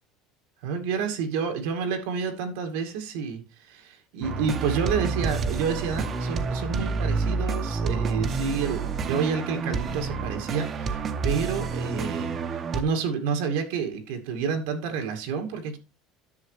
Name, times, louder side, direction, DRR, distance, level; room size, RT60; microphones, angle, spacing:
voice 1, 0.6-12.4 12.7-15.8, right 6 dB, 85° right, 2.1 m, -29 dB
sound 1, 4.2-12.8, right 4 dB, 35° right, 0.9 m, -29 dB
10.5 x 6.7 x 3.3 m
cardioid pair, 130°, 0 cm